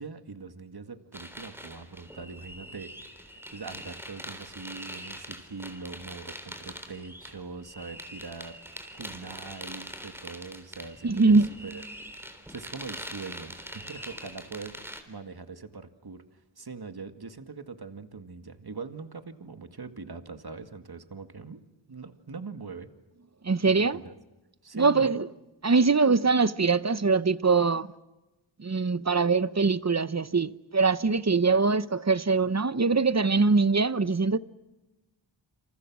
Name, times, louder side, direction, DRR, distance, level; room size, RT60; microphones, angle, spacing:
voice 1, 0.0-11.4 11.6-11.8 12.5-21.6 21.9-22.9 23.8-24.2 24.6-25.1, right 4 dB, 50° right, 2.1 m, -42 dB
sound 1, 1.1-15.0, equal, 5° right, 3.7 m, -43 dB
voice 2, 11.0-11.5 23.4-24.0 24.7-25.3 25.6-27.9 28.6-34.4, right 4 dB, 35° right, 0.9 m, -23 dB
29.0 x 27.5 x 6.2 m
wide cardioid pair, 80°, 47 cm